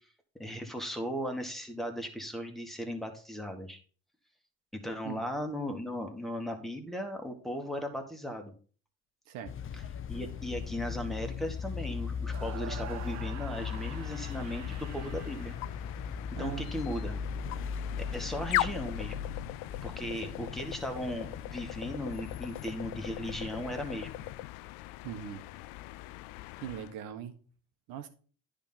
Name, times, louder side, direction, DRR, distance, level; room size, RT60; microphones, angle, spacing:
voice 1, 0.4-3.8 4.7-8.5 9.7-9.8 10.1-15.6 16.4-17.2 18.0-19.2 19.8-24.3, equal, ahead, 3 dB, 1.9 m, -37 dB
sound 1, 9.5-24.3, left 6 dB, 40° left, 0.7 m, -39 dB
sound 2, 12.2-16.4, right 9 dB, 55° right, 1.1 m, -46 dB
sound 3, 13.5-26.9, left 17 dB, 75° left, 0.5 m, -40 dB
voice 2, 16.3-16.7 25.0-25.4 26.6-27.4 27.9-28.1, right 9 dB, 75° right, 8 dB, 1.4 m, -40 dB
10.0 x 3.8 x 5.7 m, 0.41 s
supercardioid pair, 80°, 33 cm